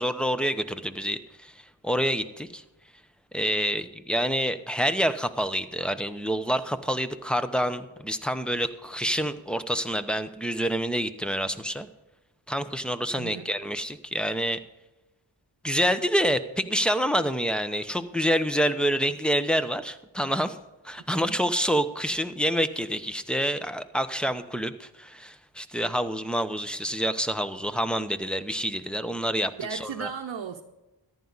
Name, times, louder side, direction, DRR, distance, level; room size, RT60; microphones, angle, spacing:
voice 1, 0.0-1.5 1.8-2.6 3.3-11.9 12.5-14.6 15.6-20.6 20.8-30.1, equal, ahead, 0.9 m, -27 dB
voice 2, 13.2-13.5 20.9-21.4 29.6-30.6, right 6 dB, 65° right, 0.9 m, -36 dB
14.0 x 11.0 x 4.1 m
cardioid pair, 50°, 47 cm